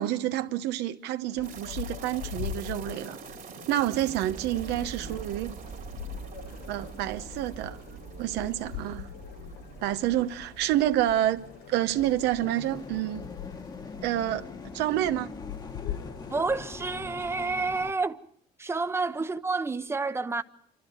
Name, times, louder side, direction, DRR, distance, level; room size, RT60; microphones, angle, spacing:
voice 1, 0.0-3.2 3.7-5.5 6.7-7.8 8.2-9.1 9.8-11.4 11.7-13.2 14.0-14.5 14.7-15.3, right 13 dB, 90° right, 1.0 m, -28 dB
sound 1, 1.4-17.0, left 11 dB, 75° left, 1.1 m, -42 dB
sound 2, 1.4-13.8 14.0-14.1 14.7-14.8, right 8 dB, 55° right, 2.3 m, -45 dB
sound 3, 12.4-17.9, left 3 dB, 25° left, 1.2 m, -42 dB
voice 2, 16.3-18.2 18.6-20.4, right 3 dB, 15° right, 0.8 m, -29 dB
27.0 x 12.5 x 9.5 m
cardioid pair, 110°, 17 cm